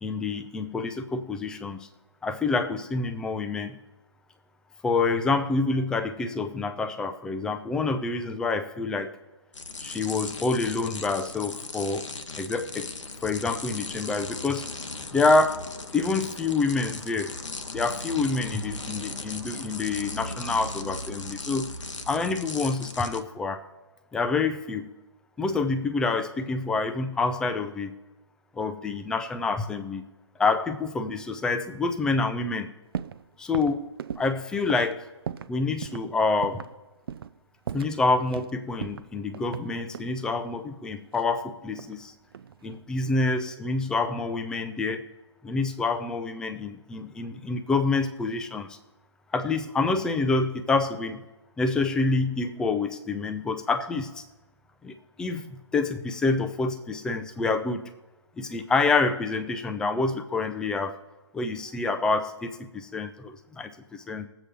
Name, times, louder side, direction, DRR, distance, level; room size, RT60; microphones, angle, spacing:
voice 1, 0.0-1.9 2.2-3.8 4.8-9.1 9.8-12.1 12.3-12.9 13.2-14.7 15.1-15.6 15.9-17.4 17.7-21.7 22.1-23.6 24.1-24.9 25.4-27.9 28.6-30.1 30.4-32.7 33.4-33.9 34.2-35.1 35.5-36.6 37.7-42.1 42.6-45.1 45.4-48.8 49.3-51.2 51.6-54.2 54.8-57.9 58.4-61.0 61.3-64.3, left 3 dB, 5° left, 9 dB, 0.5 m, -27 dB
sound 1, 9.5-23.2, left 3 dB, 80° left, 1.0 m, -37 dB
sound 2, 32.9-33.2 33.5-35.5 35.8-36.1 36.4-36.7 37.1-37.4 37.7-38.5 38.8-40.2 41.1-42.0 42.3-42.8, right 8 dB, 50° right, 0.5 m, -37 dB
20.5 x 7.7 x 3.4 m, 1.1 s
figure-of-eight pair, 140°, 16 cm